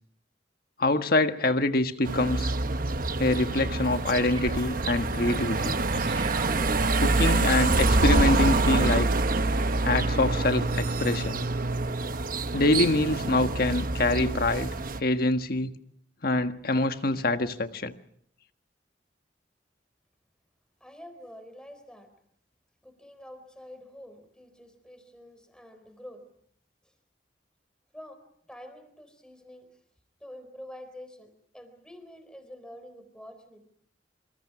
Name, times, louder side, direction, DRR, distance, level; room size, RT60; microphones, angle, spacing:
voice 1, 0.8-2.5 3.2-5.8 7.0-9.1 9.8-11.4 12.5-14.7 15.0-15.7 16.2-17.9, left 2 dB, 55° left, 8 dB, 1.5 m, -25 dB
sound 1, 2.0-15.0, right 2 dB, 50° right, 1.1 m, -26 dB
sound 2, 4.0-5.4 5.9-7.5 8.3-9.0, right 3 dB, 30° right, 2.5 m, -41 dB
voice 2, 20.8-22.1 22.8-26.2 26.8-26.9 27.9-29.7 30.2-33.6, left 1 dB, 5° left, 8 dB, 4.0 m, -47 dB
27.0 x 26.0 x 6.0 m, 0.67 s
head